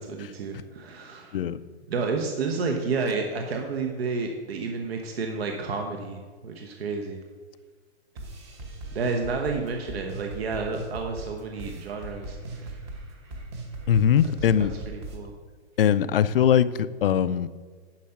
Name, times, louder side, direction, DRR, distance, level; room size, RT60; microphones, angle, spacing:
voice 1, 0.0-1.4 1.9-7.2 8.9-12.8 14.6-15.3, right 4 dB, 65° right, 3 dB, 1.2 m, -31 dB
sound 1, 8.2-15.2, right 2 dB, 25° right, 1.1 m, -38 dB
voice 2, 13.9-14.7 15.8-17.5, left 9 dB, 55° left, 15 dB, 0.5 m, -21 dB
10.5 x 5.7 x 5.8 m, 1.5 s
hypercardioid pair, 165°, 33 cm